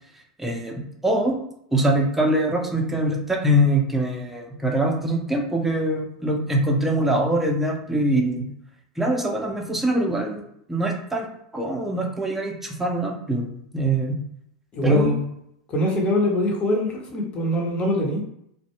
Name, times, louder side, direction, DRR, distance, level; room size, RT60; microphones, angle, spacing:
voice 1, 0.4-1.3 1.7-8.4 9.0-10.4 10.7-11.3 11.5-14.2 14.8-15.2, right 1 dB, 5° right, 0 dB, 0.6 m, -23 dB
voice 2, 14.7-15.1 15.7-18.2, left 1 dB, 30° left, 0 dB, 0.8 m, -23 dB
2.3 x 2.2 x 3.0 m, 0.74 s
hypercardioid pair, 90°, 4 cm